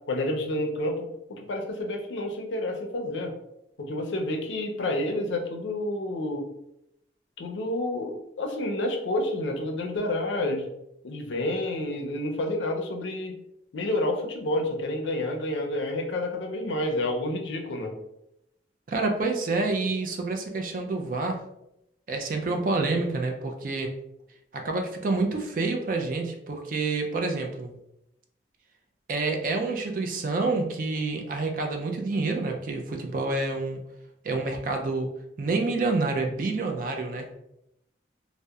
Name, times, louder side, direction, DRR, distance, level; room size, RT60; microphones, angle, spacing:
voice 1, 0.1-3.3 3.8-6.5 7.4-10.7 11.0-13.4 13.7-17.9, left 1 dB, 85° left, 3 dB, 0.5 m, -29 dB
voice 2, 18.9-21.4 22.1-23.9 24.5-27.7 29.1-33.8 34.2-35.1 35.4-37.3, right 3 dB, 45° right, 3 dB, 0.3 m, -28 dB
2.7 x 2.0 x 2.2 m, 0.82 s
head